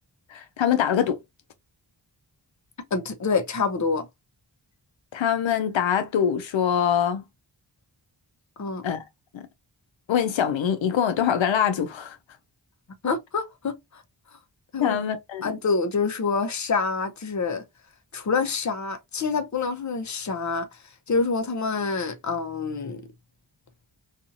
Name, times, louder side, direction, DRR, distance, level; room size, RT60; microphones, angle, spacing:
voice 1, 0.3-1.2 5.1-7.2 8.8-9.0 9.3-9.4 10.1-12.2 14.8-15.5, left 8 dB, 85° left, 0.5 m, -24 dB
voice 2, 2.9-4.1 8.6-8.8 13.0-14.0 14.7-15.0 15.4-17.6 18.1-20.8 21.1-23.0, left 4 dB, 40° left, 0.6 m, -26 dB
2.7 x 2.4 x 2.5 m
wide cardioid pair, 50°, 45 cm